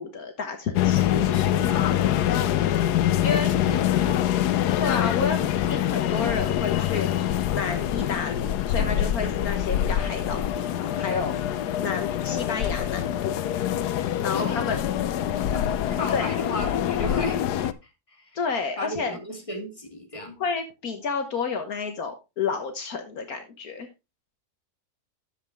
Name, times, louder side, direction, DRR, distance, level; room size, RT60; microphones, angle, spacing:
voice 1, 0.0-1.1 2.2-3.5 4.8-7.1 7.5-13.4 14.2-14.8 16.1-16.3 18.3-19.2 20.4-23.9, left 5 dB, 70° left, 5 dB, 1.6 m, -30 dB
sound 1, 0.8-17.7, left 11 dB, 90° left, 1.3 m, -25 dB
voice 2, 1.1-2.3 3.3-4.5 14.3-14.8 15.4-17.7 18.1-18.3 18.8-20.4, left 1 dB, 20° left, 2 dB, 2.5 m, -36 dB
11.0 x 7.5 x 3.4 m, 0.26 s
omnidirectional pair, 1.7 m